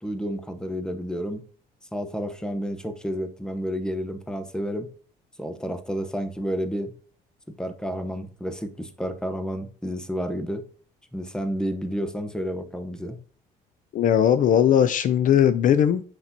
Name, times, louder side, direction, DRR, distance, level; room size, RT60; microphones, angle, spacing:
voice 1, 0.0-1.4 1.9-4.9 5.4-6.9 7.6-10.6 11.1-13.2, equal, 5° left, 0.9 m, -30 dB
voice 2, 13.9-16.0, left 9 dB, 50° left, 0.4 m, -19 dB
5.9 x 5.7 x 2.8 m
cardioid pair, 110°, 17 cm